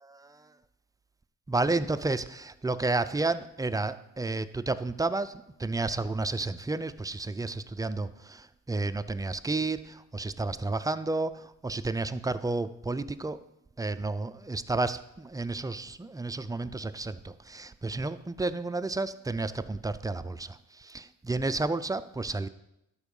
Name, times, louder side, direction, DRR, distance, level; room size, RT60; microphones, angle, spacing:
voice 1, 1.5-5.3 5.6-13.4 13.8-22.5, right 3 dB, 10° right, 12 dB, 0.4 m, -31 dB
12.0 x 4.6 x 5.4 m, 0.85 s
cardioid pair, 90°, 30 cm